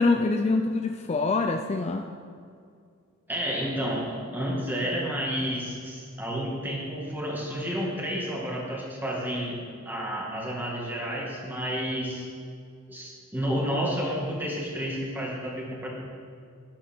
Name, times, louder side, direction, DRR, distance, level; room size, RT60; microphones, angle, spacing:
voice 1, 0.0-2.1, left 3 dB, 30° left, 5 dB, 0.4 m, -25 dB
voice 2, 3.3-12.3 12.9-15.9, equal, 10° right, -3 dB, 2.0 m, -31 dB
11.5 x 9.5 x 4.5 m, 2.3 s
head